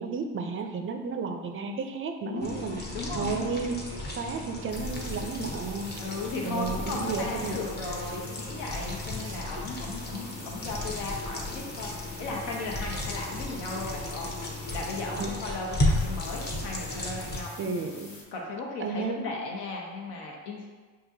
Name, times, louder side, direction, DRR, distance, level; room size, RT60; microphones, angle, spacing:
voice 1, 0.0-2.8 3.1-5.9 6.4-7.6 9.3-9.4 15.2-15.3 17.6-18.1 18.8-19.2, right 4 dB, 30° right, 5 dB, 0.5 m, -33 dB
voice 2, 2.2-3.6 6.0-17.5 18.3-20.7, left 3 dB, 70° left, -1 dB, 1.1 m, -36 dB
sound 1, 2.4-17.4, left 2 dB, 25° left, 0.9 m, -34 dB
sound 2, 4.7-18.2, left 2 dB, 45° left, 1.2 m, -48 dB
5.8 x 2.6 x 2.7 m, 1.4 s
supercardioid pair, 80°, 41 cm